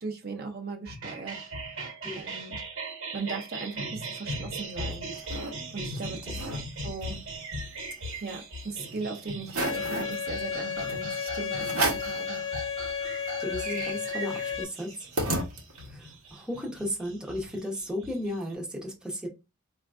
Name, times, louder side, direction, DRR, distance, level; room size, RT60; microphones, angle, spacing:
voice 1, 0.0-2.6 3.1-5.1 5.7-6.4 6.8-7.2 8.2-12.4, right 4 dB, 45° right, 4 dB, 0.6 m, -38 dB
sound 1, 0.9-18.5, right 1 dB, 60° right, 1.2 m, -39 dB
sound 2, 4.7-5.5 6.0-6.1 6.3-6.6 7.0-8.6 9.0-9.1 9.5-10.2 10.9-11.0 11.6-12.2 12.7-12.8 13.0-16.0, right 2 dB, 85° right, 0.9 m, -33 dB
Bowed string instrument, 9.6-14.6, left 7 dB, 60° left, 0.4 m, -33 dB
voice 2, 13.4-15.1 15.9-19.3, left 1 dB, 5° right, -1 dB, 0.6 m, -34 dB
4.3 x 2.4 x 2.3 m, 0.26 s
head